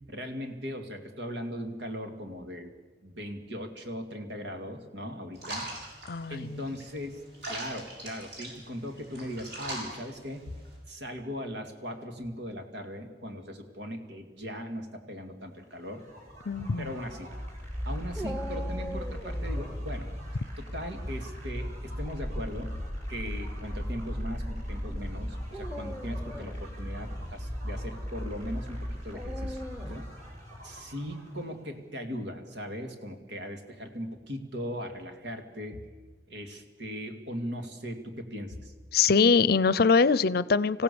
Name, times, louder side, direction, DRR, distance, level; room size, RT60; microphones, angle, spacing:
voice 1, 0.1-2.7 3.0-5.7 6.3-7.2 7.5-10.6 10.9-16.1 16.8-17.3 17.8-20.1 20.6-22.8 23.1-29.6 29.9-30.1 30.6-35.9 36.3-38.7, equal, 85° right, 5 dB, 2.5 m, -39 dB
sound 1, 5.4-10.8, right 1 dB, 65° right, 7.4 m, -41 dB
voice 2, 6.1-6.6 16.5-16.9 38.9-40.8, left 5 dB, 55° left, 18 dB, 0.6 m, -23 dB
sound 2, 15.8-31.5, equal, 40° right, 6.8 m, -37 dB
Dog, 18.2-19.8 21.9-22.4 23.2-23.3 25.4-26.7 29.1-30.1, equal, 5° right, 1.1 m, -41 dB
26.5 x 16.0 x 7.0 m, 1.4 s
head